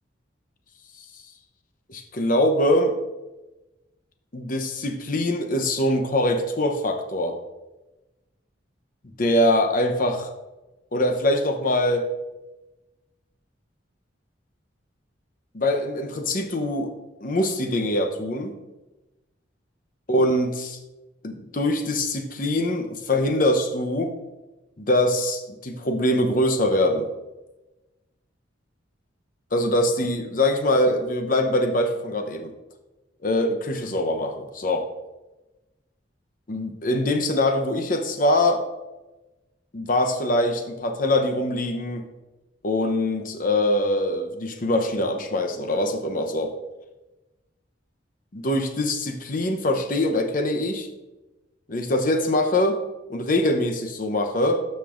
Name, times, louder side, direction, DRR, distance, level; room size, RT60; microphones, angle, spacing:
voice 1, 1.9-2.9 4.3-7.4 9.2-10.3 10.9-12.1 15.5-16.9 17.2-18.5 20.1-20.8 21.2-24.2 24.8-27.1 29.5-32.5 33.2-34.9 36.5-38.6 39.7-42.0 42.6-46.5 48.3-50.9 51.7-52.8 53.1-54.6, left 1 dB, 45° left, 5 dB, 0.8 m, -23 dB
13.0 x 5.3 x 2.5 m, 1.1 s
head